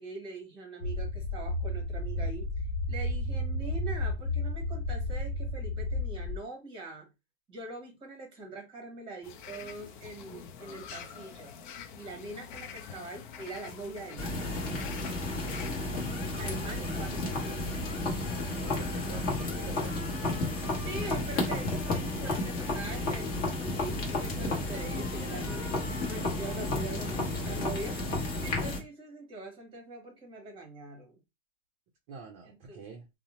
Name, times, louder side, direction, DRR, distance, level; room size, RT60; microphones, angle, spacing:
voice 1, 0.0-2.5 2.9-7.1 7.5-11.5 12.0-14.4 16.3-17.6 20.8-28.0 28.4-31.2 32.5-32.8, right 2 dB, 15° right, 1.0 m, -43 dB
sound 1, 0.8-6.4, left 1 dB, 75° left, 0.8 m, -32 dB
sound 2, 9.2-15.8, left 7 dB, 45° left, 0.5 m, -46 dB
sound 3, 14.2-28.8, left 2 dB, 25° left, 1.0 m, -32 dB
voice 2, 18.6-19.3 19.5-20.0 32.1-33.0, right 5 dB, 30° right, 0.5 m, -46 dB
2.6 x 2.0 x 2.9 m
hypercardioid pair, 145°, 34 cm